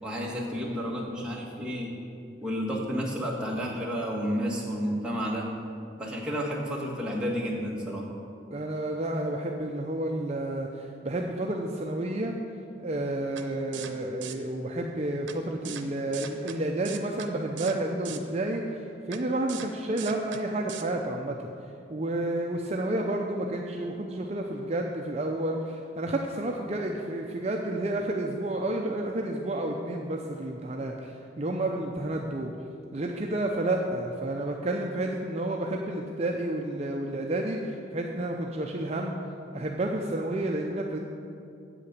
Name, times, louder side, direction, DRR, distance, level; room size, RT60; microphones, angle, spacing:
voice 1, 0.0-1.9 2.4-5.5 6.0-8.1, equal, 5° right, -4 dB, 1.6 m, -31 dB
voice 2, 8.5-12.3 12.8-21.4 21.9-32.5 32.9-39.1 39.5-41.0, right 1 dB, 35° right, 1 dB, 0.6 m, -30 dB
sound 1, 13.4-13.5 13.7-13.9 14.2-14.3 15.3-15.4 15.6-15.8 16.1-16.6 16.8-17.3 17.6-17.8 18.0-18.2 19.1-19.2 19.5-19.7 20.0-20.4 20.7-20.8, right 8 dB, 90° right, 0.7 m, -39 dB
8.6 x 7.9 x 6.7 m, 2.5 s
head